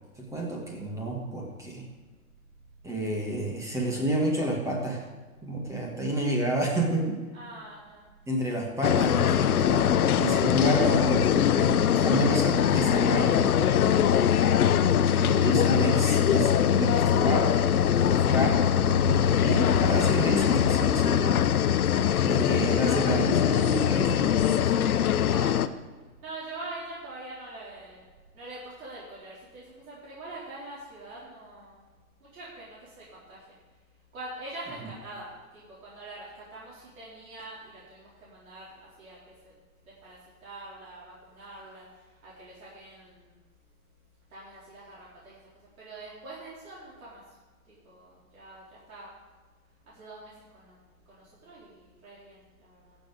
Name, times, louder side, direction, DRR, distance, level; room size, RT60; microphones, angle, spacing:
voice 1, 0.2-1.9 2.8-5.1 5.4-7.2 8.3-14.1 15.2-21.4 22.2-24.8, right 1 dB, 5° right, -1 dB, 1.9 m, -30 dB
voice 2, 7.3-8.0 10.2-10.4 25.3-25.6 26.2-28.0 28.3-31.8 32.2-33.4 34.1-39.2 39.4-39.5 39.9-41.9 42.2-43.4 44.3-45.4 45.8-47.2 47.7-49.1 49.9-50.8 51.1-53.0, right 2 dB, 70° right, -8 dB, 4.3 m, -44 dB
sound 1, 8.8-25.7, left 9 dB, 80° left, 0.8 m, -22 dB
16.0 x 7.2 x 5.0 m, 1.3 s
hypercardioid pair, 140°, 44 cm